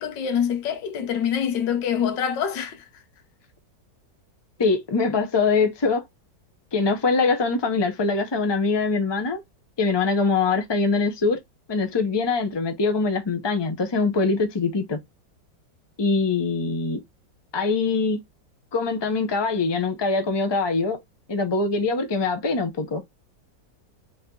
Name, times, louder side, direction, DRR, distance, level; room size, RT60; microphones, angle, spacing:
voice 1, 0.0-2.9, left 8 dB, 75° left, 1.6 m, -25 dB
voice 2, 4.6-6.0 6.7-9.4 9.8-11.4 11.7-15.0 16.0-17.0 17.5-18.2 18.7-21.0 21.3-23.0, left 4 dB, 35° left, 0.4 m, -23 dB
4.3 x 2.8 x 3.7 m
omnidirectional pair, 2.0 m